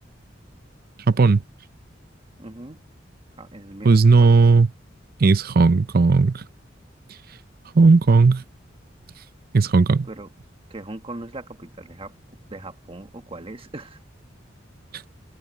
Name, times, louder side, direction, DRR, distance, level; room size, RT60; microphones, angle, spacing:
voice 1, 1.1-1.4 3.8-4.7 5.2-6.4 7.7-8.4 9.5-10.1, right 4 dB, 50° right, 0.6 m, -15 dB
voice 2, 2.4-2.8 3.4-4.3 10.0-10.3 10.7-12.1 12.5-14.0, right 2 dB, 30° right, 1.5 m, -39 dB
head